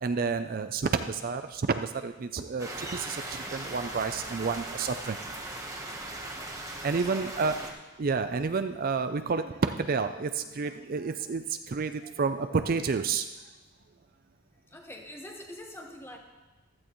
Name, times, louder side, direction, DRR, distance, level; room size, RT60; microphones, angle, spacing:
voice 1, 0.0-5.2 6.8-7.6 8.0-13.3, right 4 dB, 40° right, 9 dB, 0.4 m, -30 dB
sound 1, 2.6-7.7, right 1 dB, 15° right, 1.2 m, -39 dB
voice 2, 7.1-7.7 14.7-16.2, left 1 dB, 10° left, 2 dB, 1.2 m, -45 dB
15.0 x 13.0 x 3.1 m, 1.1 s
head